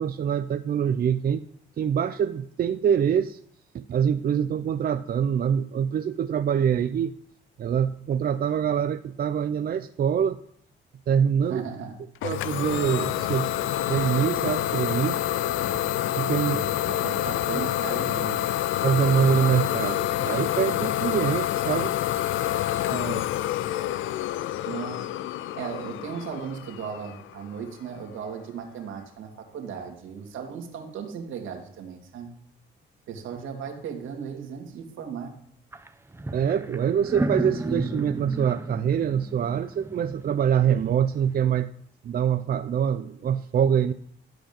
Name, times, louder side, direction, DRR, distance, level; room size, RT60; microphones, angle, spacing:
voice 1, 0.0-1.4 1.8-3.4 3.7-7.2 7.6-10.4 11.1-11.6 12.2-13.5 13.9-15.2 16.2-16.6 18.8-22.0 36.3-43.9, right 8 dB, 50° right, 10 dB, 0.6 m, -25 dB
voice 2, 11.5-12.0 15.7-15.8 16.4-18.6 22.9-23.3 24.6-25.1 25.5-32.3 33.1-35.3, right 6 dB, 85° right, 2 dB, 2.7 m, -36 dB
Idling / Domestic sounds home sounds, 12.2-27.7, left 13 dB, 80° left, 0.5 m, -27 dB
sound 1, 35.7-35.9 36.1-41.0, right 2 dB, 10° right, 0.8 m, -33 dB
13.5 x 5.1 x 8.8 m, 0.68 s
cardioid pair, 90°, 20 cm